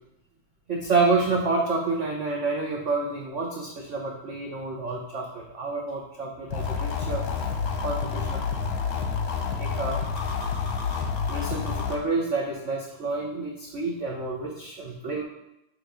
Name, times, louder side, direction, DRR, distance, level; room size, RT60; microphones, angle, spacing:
voice 1, 0.7-7.3 7.8-8.4 9.6-10.0 11.3-15.2, right 3 dB, 65° right, -1 dB, 0.7 m, -28 dB
sound 1, 6.5-12.0, left 5 dB, 60° left, 1.0 m, -29 dB
6.9 x 3.0 x 5.0 m, 0.85 s
omnidirectional pair, 2.2 m